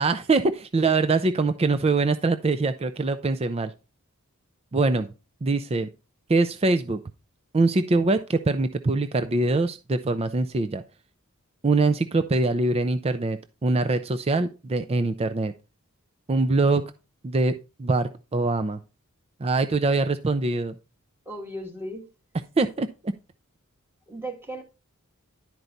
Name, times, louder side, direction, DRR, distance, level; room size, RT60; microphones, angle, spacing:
voice 1, 0.0-3.7 4.7-5.1 5.4-5.9 6.3-7.0 7.5-10.8 11.6-15.5 16.3-16.8 17.2-17.5 17.8-18.8 19.4-20.7 22.6-22.9, right 3 dB, 25° right, 0.4 m, -23 dB
voice 2, 21.3-22.1 24.1-24.6, right 1 dB, 10° right, 1.8 m, -36 dB
11.0 x 4.6 x 3.9 m
head